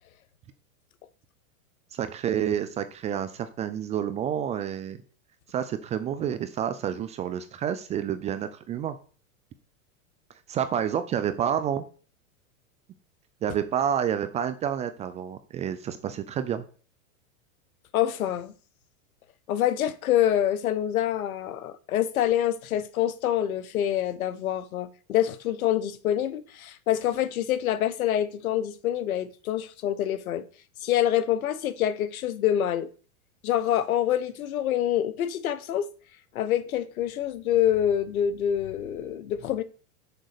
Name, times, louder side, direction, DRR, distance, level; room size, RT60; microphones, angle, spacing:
voice 1, 1.9-5.0 5.5-9.0 10.5-11.8 13.4-16.6, right 9 dB, 15° right, 0.4 m, -29 dB
voice 2, 17.9-18.5 19.5-30.4 30.8-32.9 33.4-35.9 36.3-39.6, left 11 dB, 85° left, 1.0 m, -26 dB
6.5 x 5.2 x 6.6 m
supercardioid pair, 130°, 41 cm